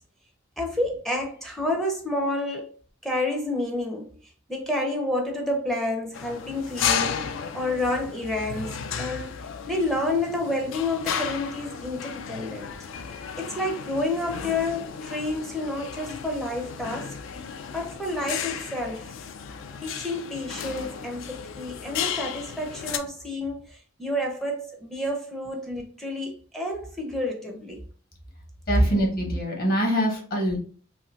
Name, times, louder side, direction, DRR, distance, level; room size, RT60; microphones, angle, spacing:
voice 1, 0.6-2.7 3.0-4.1 4.5-8.7 9.0-9.3 9.7-12.7 13.4-17.1 17.7-19.0 19.8-27.8, left 1 dB, ahead, 0.5 m, -29 dB
sound 1, 6.1-23.0, left 7 dB, 65° left, 0.3 m, -34 dB
voice 2, 28.7-30.6, equal, 45° left, 1.0 m, -24 dB
2.6 x 2.5 x 3.1 m
head